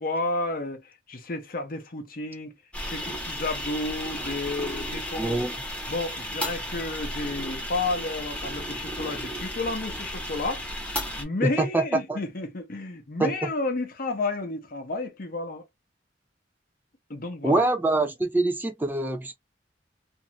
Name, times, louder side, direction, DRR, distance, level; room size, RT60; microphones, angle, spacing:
voice 1, 0.0-2.6 2.9-5.4 5.9-10.7 11.2-15.7 17.1-17.6, left 2 dB, 50° left, 0.8 m, -31 dB
sound 1, 2.7-11.2, equal, 5° left, 0.9 m, -34 dB
voice 2, 5.1-5.5 11.4-11.8 12.1-12.2 13.2-13.3 17.4-19.4, right 2 dB, 10° right, 0.4 m, -24 dB
2.6 x 2.5 x 2.9 m
head